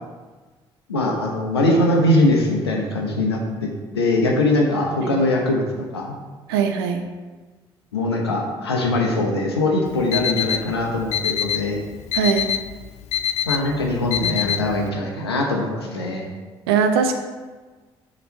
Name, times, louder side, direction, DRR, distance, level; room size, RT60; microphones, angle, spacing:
voice 1, 0.9-5.6 5.9-6.2 7.9-11.8 13.5-16.2, left 2 dB, 85° left, 0 dB, 0.8 m, -21 dB
voice 2, 6.5-7.0 12.1-12.5 16.7-17.1, right 6 dB, 80° right, 6 dB, 0.5 m, -20 dB
Alarm, 9.9-14.9, left 9 dB, 60° left, 0.4 m, -26 dB
6.7 x 3.1 x 5.4 m, 1.3 s
figure-of-eight pair, 45°, 13 cm